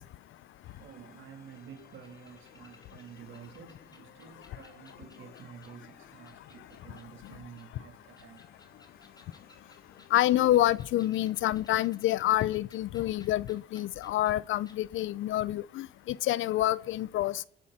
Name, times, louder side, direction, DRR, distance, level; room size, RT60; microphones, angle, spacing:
sound 1, 0.6-11.4, left 6 dB, 50° left, 3.1 m, -61 dB
voice 1, 0.8-8.5, right 8 dB, 75° right, 3.5 m, -50 dB
sound 2, 1.6-5.8 6.3-7.7 8.1-14.4 14.7-14.8, left 2 dB, 20° left, 2.7 m, -60 dB
voice 2, 10.1-17.5, left 14 dB, 80° left, 0.7 m, -27 dB
28.5 x 11.0 x 4.2 m
cardioid pair, 90°, 20 cm